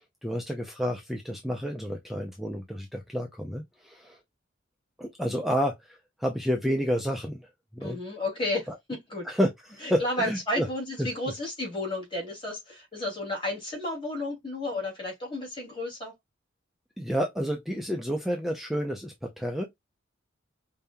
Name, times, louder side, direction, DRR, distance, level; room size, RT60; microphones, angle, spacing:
voice 1, 0.2-4.2 5.0-8.0 8.7-8.8 9.2-10.7 11.0-11.1 17.0-19.6, equal, ahead, 0.6 m, -30 dB
voice 2, 7.8-9.3 9.8-16.1, left 1 dB, 25° left, 2.5 m, -32 dB
5.2 x 2.8 x 2.2 m
head